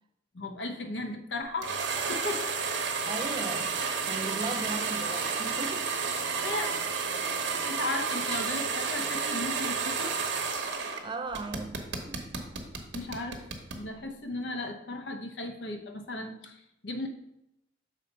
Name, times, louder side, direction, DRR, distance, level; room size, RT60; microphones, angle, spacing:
voice 1, 0.3-1.8 2.1-2.5 6.4-7.3 7.6-10.2 12.9-13.5 13.8-17.1, left 2 dB, 75° left, 0.9 m, -36 dB
sound 1, 1.6-11.0 11.3-13.8, right 5 dB, 80° right, 1.1 m, -31 dB
voice 2, 3.0-3.8 4.1-5.9 11.0-11.8 12.1-12.2, right 3 dB, 25° right, 0.4 m, -37 dB
6.4 x 4.3 x 5.4 m
head